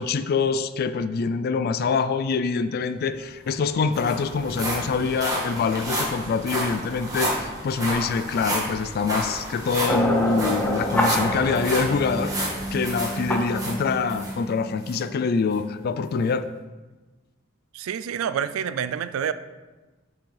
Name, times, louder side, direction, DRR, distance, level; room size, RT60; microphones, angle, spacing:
voice 1, 0.0-16.5, left 5 dB, 50° left, 12 dB, 0.3 m, -25 dB
sound 1, 3.1-3.2 3.5-14.3 14.8-15.0 15.5-15.6, right 1 dB, 20° right, 1.5 m, -31 dB
sound 2, 9.9-15.2, equal, 10° left, 0.6 m, -27 dB
voice 2, 17.7-19.3, right 8 dB, 85° right, 13 dB, 0.3 m, -27 dB
6.0 x 5.9 x 3.3 m, 1.2 s
head